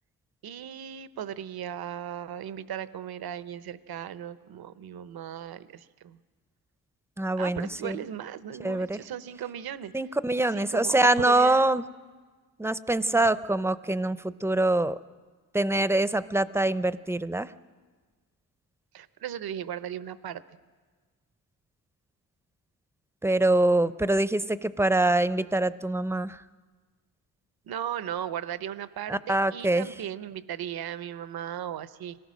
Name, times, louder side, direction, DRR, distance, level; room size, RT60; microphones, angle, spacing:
voice 1, 0.4-6.2 7.4-9.9 10.5-11.7 13.1-13.3 18.9-20.4 27.7-32.2, right 10 dB, 75° right, 14 dB, 0.8 m, -37 dB
voice 2, 7.2-8.0 8.6-9.0 9.9-11.8 12.6-15.0 15.5-17.5 23.2-26.4 29.1-29.9, right 2 dB, 5° right, 15 dB, 0.5 m, -24 dB
25.5 x 18.0 x 6.2 m, 1.4 s
cardioid pair, 85°, 37 cm